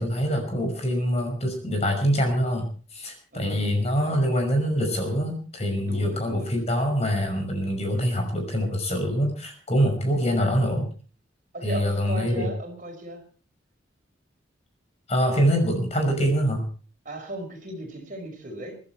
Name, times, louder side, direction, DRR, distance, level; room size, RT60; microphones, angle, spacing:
voice 1, 0.0-2.7 2.9-10.9 11.6-12.5 15.1-16.6, equal, 35° left, 4 dB, 5.6 m, -24 dB
voice 2, 3.3-3.7 5.8-6.5 11.5-13.2 17.0-18.8, right 1 dB, 45° right, 4 dB, 5.1 m, -36 dB
24.0 x 12.0 x 4.5 m, 0.41 s
head